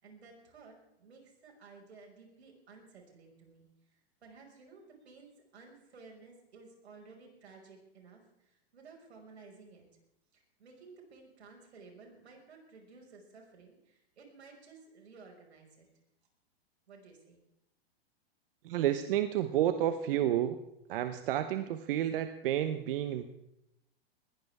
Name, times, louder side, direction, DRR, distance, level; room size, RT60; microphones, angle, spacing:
voice 1, 0.0-3.7 4.2-8.2 8.5-9.9 10.3-15.9 16.9-17.4, right 4 dB, 90° right, 1 dB, 5.8 m, -55 dB
voice 2, 18.6-20.6 20.9-23.2, right 11 dB, 60° right, 10 dB, 1.1 m, -30 dB
21.0 x 15.5 x 3.6 m, 0.82 s
hypercardioid pair, 140°, 31 cm